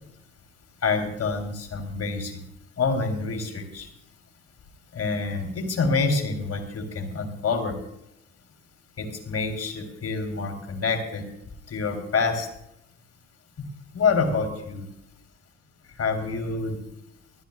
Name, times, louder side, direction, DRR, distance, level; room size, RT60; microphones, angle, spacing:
voice 1, 0.8-2.3 2.8-3.9 4.9-7.8 9.0-11.2 11.7-12.5 13.6-13.7 13.9-14.9 16.0-16.8, left 4 dB, 40° left, 5 dB, 3.3 m, -27 dB
25.5 x 11.5 x 2.3 m, 0.80 s
hypercardioid pair, 60°, 37 cm